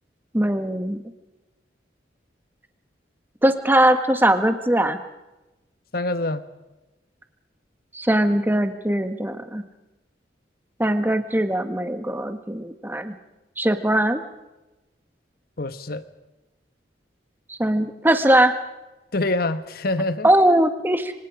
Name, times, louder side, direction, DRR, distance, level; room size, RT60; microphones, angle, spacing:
voice 1, 0.3-1.0 3.4-5.0 7.9-9.6 10.8-13.1 13.6-14.2 17.5-18.5 20.2-21.1, right 1 dB, 10° right, 8 dB, 1.5 m, -20 dB
voice 2, 5.9-6.4 15.6-16.0 19.1-20.3, left 2 dB, 55° left, 12 dB, 1.3 m, -25 dB
26.5 x 26.0 x 5.0 m, 1.0 s
head